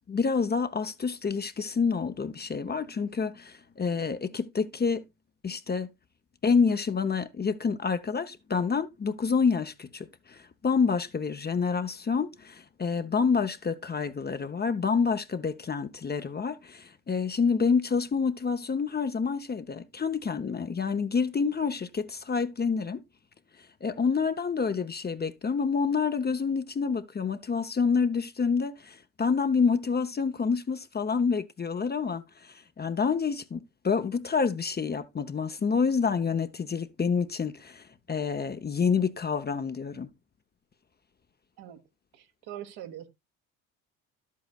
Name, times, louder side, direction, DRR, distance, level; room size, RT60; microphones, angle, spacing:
voice 1, 0.1-5.0 5.4-5.9 6.4-23.0 23.8-40.1, left 5 dB, 25° left, 0.7 m, -28 dB
voice 2, 42.1-43.1, right 11 dB, 65° right, 1.4 m, -42 dB
11.5 x 8.3 x 2.3 m
hypercardioid pair, 65°, 42 cm